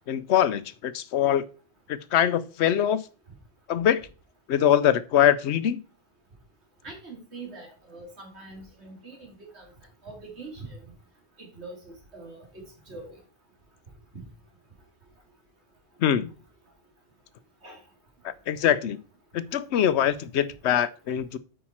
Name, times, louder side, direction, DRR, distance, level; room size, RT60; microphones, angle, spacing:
voice 1, 0.1-1.4 1.9-3.1 3.7-4.0 4.5-5.8 16.0-16.3 18.2-19.0 19.3-21.4, left 10 dB, 85° left, 16 dB, 0.9 m, -23 dB
voice 2, 6.8-9.7 10.0-10.8 11.4-13.2 14.1-14.2 17.6-17.8, right 3 dB, 80° right, 1 dB, 2.8 m, -43 dB
8.5 x 5.7 x 4.3 m, 0.36 s
omnidirectional pair, 1.1 m